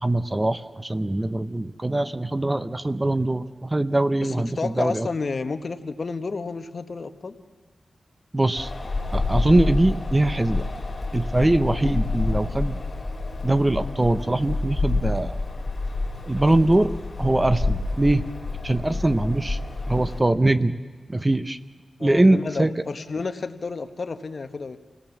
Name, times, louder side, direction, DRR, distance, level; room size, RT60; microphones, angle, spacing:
voice 1, 0.0-5.1 8.3-8.7 9.1-10.7 11.1-12.8 13.4-15.4 16.3-16.9 17.2-18.2 18.6-19.6 19.9-20.8 21.1-21.6 22.0-22.7, right 2 dB, 20° right, 12 dB, 0.7 m, -22 dB
voice 2, 4.2-7.3 22.0-24.8, left 4 dB, 55° left, 9 dB, 1.2 m, -31 dB
Wind, 8.6-20.2, left 3 dB, 40° left, 3.5 m, -28 dB
28.0 x 18.0 x 7.3 m, 1.5 s
wide cardioid pair, 90°, 0 cm